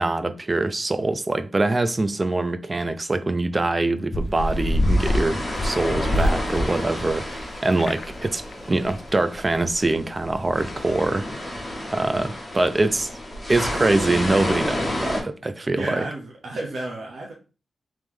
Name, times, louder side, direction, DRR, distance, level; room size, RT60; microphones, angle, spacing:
voice 1, 0.0-8.4 8.7-11.3 11.9-13.1 13.5-16.0, right 2 dB, 25° right, 0.3 m, -24 dB
sound 1, 4.1-7.4 7.7-8.2 8.5-8.6 8.8-9.0, left 1 dB, 50° left, 0.4 m, -25 dB
sound 2, 4.4-15.2, left 1 dB, 25° left, 1.2 m, -31 dB
voice 2, 15.7-17.3, right 2 dB, 65° right, 0.9 m, -31 dB
3.2 x 3.0 x 3.6 m
wide cardioid pair, 155°, 0 cm